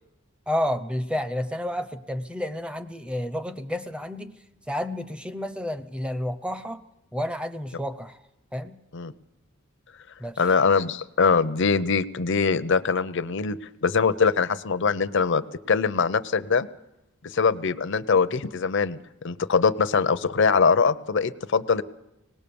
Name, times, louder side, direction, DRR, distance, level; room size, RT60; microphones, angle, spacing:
voice 1, 0.5-4.4 4.7-6.8 7.1-8.2 8.5-8.8 10.2-10.4, left 1 dB, 5° right, 12 dB, 0.7 m, -30 dB
voice 2, 10.4-16.7 17.2-21.8, left 5 dB, 60° left, 12 dB, 0.7 m, -23 dB
25.5 x 19.0 x 7.0 m, 0.90 s
head